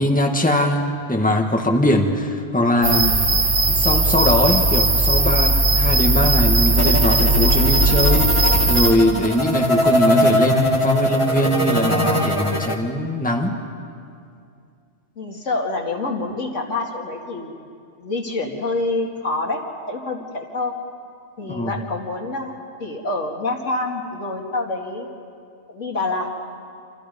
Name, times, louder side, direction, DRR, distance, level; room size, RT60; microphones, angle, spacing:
voice 1, 0.0-3.1 3.7-13.6 21.4-21.7, left 1 dB, 5° left, 1 dB, 1.9 m, -21 dB
sound 1, 2.8-8.9, right 2 dB, 55° right, 1.8 m, -17 dB
sound 2, 6.8-12.7, left 1 dB, 25° left, 1.9 m, -21 dB
voice 2, 15.2-17.5 18.0-19.6 19.9-20.7 21.4-22.5 22.8-25.1 25.7-26.3, left 2 dB, 80° left, 0 dB, 2.8 m, -26 dB
29.0 x 27.0 x 5.4 m, 2.4 s
omnidirectional pair, 1.3 m